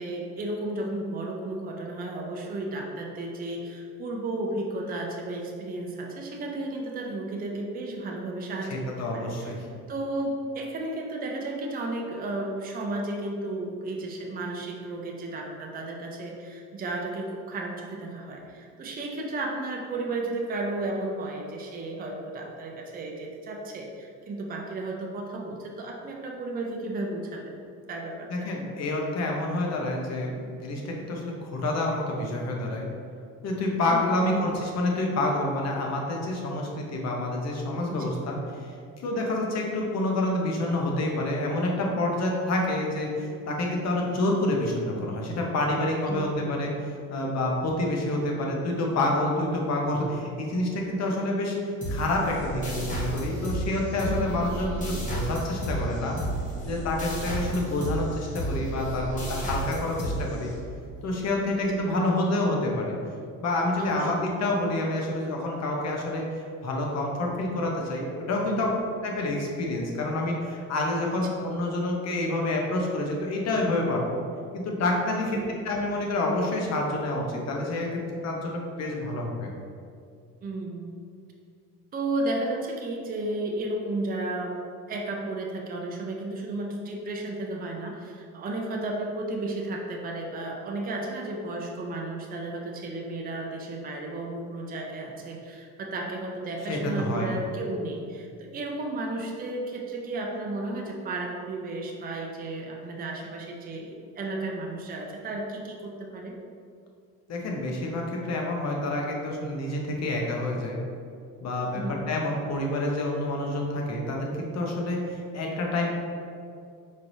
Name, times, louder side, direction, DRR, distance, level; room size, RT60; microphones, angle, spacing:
voice 1, 0.0-9.5 9.9-27.6 27.9-28.5 33.9-34.5 37.9-38.2 46.1-46.6 54.0-54.3 63.8-64.1 68.5-68.8 71.1-71.3 75.2-75.6 80.4-80.9 81.9-84.6 84.9-106.4 111.7-112.0, right 2 dB, 25° right, 0 dB, 0.5 m, -33 dB
voice 2, 8.7-9.6 28.3-32.8 33.4-46.7 47.1-56.1 56.7-60.5 61.0-62.9 63.4-68.7 69.0-74.2 74.5-75.3 75.6-77.9 78.2-79.5 96.7-97.4 107.3-110.8 111.4-115.9, left 1 dB, 50° left, 0 dB, 0.8 m, -28 dB
sound 1, 51.8-61.0, right 1 dB, 25° left, 1.1 m, -32 dB
4.6 x 3.1 x 2.7 m, 2.4 s
cardioid pair, 110°, 33 cm